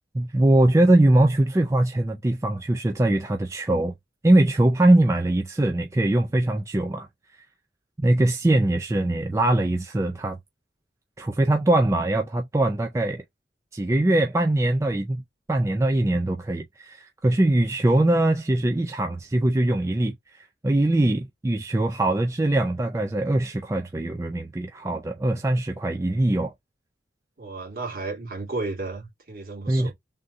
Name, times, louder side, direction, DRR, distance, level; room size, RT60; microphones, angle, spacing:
voice 1, 0.1-3.9 4.2-7.1 8.0-10.4 11.2-13.2 13.7-15.2 15.5-26.5 29.7-29.9, right 1 dB, 15° right, 0.3 m, -22 dB
voice 2, 27.4-29.9, right 3 dB, 55° right, 2.0 m, -33 dB
3.6 x 2.6 x 4.1 m
head